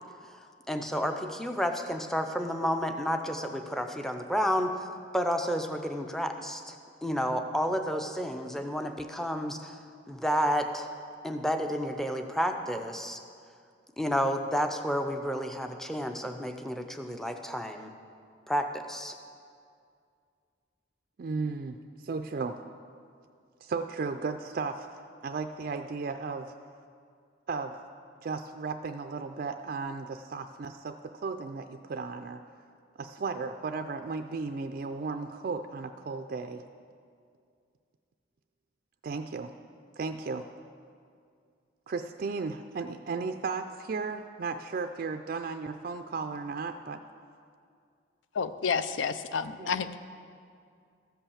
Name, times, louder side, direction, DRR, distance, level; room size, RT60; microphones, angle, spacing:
voice 1, 0.7-4.7 5.1-6.8 7.0-9.8 10.1-10.9 11.2-13.2 14.0-17.9 18.5-19.1, equal, ahead, 5 dB, 0.5 m, -30 dB
voice 2, 21.2-22.6 23.6-24.9 25.2-26.5 27.5-27.8 28.2-32.4 33.0-36.6 39.0-39.5 40.0-40.5 41.9-47.0 49.6-49.8, right 4 dB, 50° right, 6 dB, 0.3 m, -35 dB
voice 3, 48.3-50.0, left 6 dB, 80° left, 12 dB, 0.5 m, -30 dB
14.0 x 5.6 x 7.1 m, 2.3 s
head